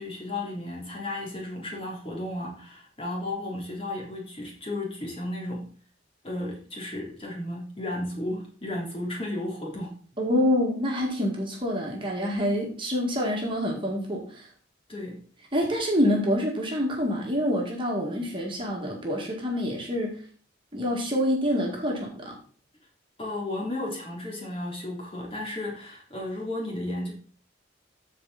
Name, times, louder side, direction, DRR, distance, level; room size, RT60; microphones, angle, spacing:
voice 1, 0.0-5.7 6.2-9.9 14.9-15.2 23.2-27.1, left 1 dB, 30° left, -2 dB, 3.5 m, -34 dB
voice 2, 10.2-14.5 15.5-20.2 20.7-22.4, equal, 25° right, -1 dB, 2.1 m, -27 dB
14.5 x 5.0 x 4.1 m, 0.42 s
head